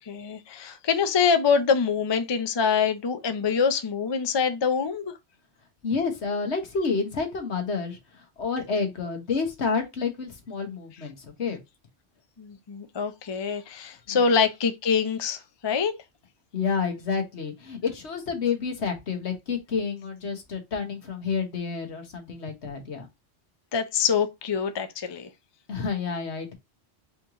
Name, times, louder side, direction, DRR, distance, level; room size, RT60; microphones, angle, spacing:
voice 1, 0.0-5.1 12.4-15.9 23.7-25.3, left 6 dB, 35° left, 0.4 m, -25 dB
voice 2, 5.8-11.6 14.1-14.2 16.5-23.1 25.7-26.5, left 5 dB, 75° left, 1.5 m, -29 dB
4.4 x 3.1 x 3.7 m
omnidirectional pair, 1.1 m